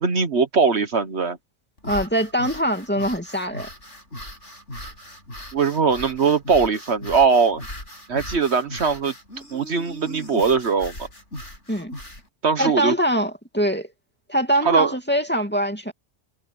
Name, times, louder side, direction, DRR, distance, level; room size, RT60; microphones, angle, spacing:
voice 1, 0.0-1.4 5.5-7.7 8.1-9.1 9.5-10.9 12.4-12.9 14.6-14.9, right 5 dB, 60° right, 1.4 m, -20 dB
sound 1, 1.8-12.3, left 1 dB, 75° left, 8.5 m, -38 dB
voice 2, 1.8-3.7 11.7-11.9 12.6-13.9 14.3-15.9, equal, 10° left, 2.5 m, -23 dB
omnidirectional pair, 1.3 m